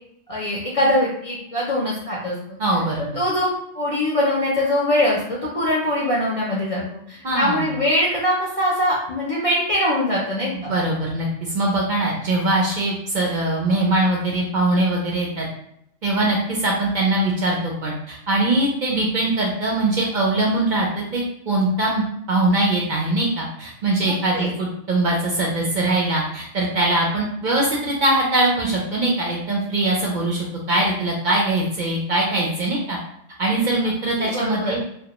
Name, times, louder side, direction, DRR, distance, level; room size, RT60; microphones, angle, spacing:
voice 1, 0.3-2.4 3.0-10.7 24.0-24.5 34.2-34.8, left 1 dB, 50° left, -6 dB, 0.4 m, -22 dB
voice 2, 2.6-3.1 7.2-7.8 10.5-11.3 11.5-15.5 16.0-33.0 33.4-34.8, right 2 dB, 55° right, -3 dB, 0.6 m, -22 dB
2.2 x 2.2 x 2.8 m, 0.75 s
omnidirectional pair, 1.2 m